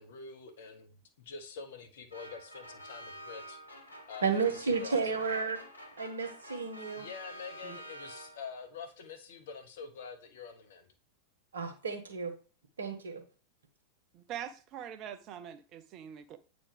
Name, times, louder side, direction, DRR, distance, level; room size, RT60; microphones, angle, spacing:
voice 1, 0.0-3.8 4.1-5.1 6.9-10.9, left 5 dB, 60° left, 1.2 m, -46 dB
sound 1, 2.1-8.6, equal, 80° left, 1.1 m, -49 dB
voice 2, 4.2-5.6 6.0-7.1 11.5-12.3 12.8-13.2, right 5 dB, 70° right, 1.3 m, -32 dB
voice 3, 14.1-16.4, right 9 dB, 35° right, 0.7 m, -43 dB
8.7 x 4.0 x 3.5 m
figure-of-eight pair, 90°, 0 cm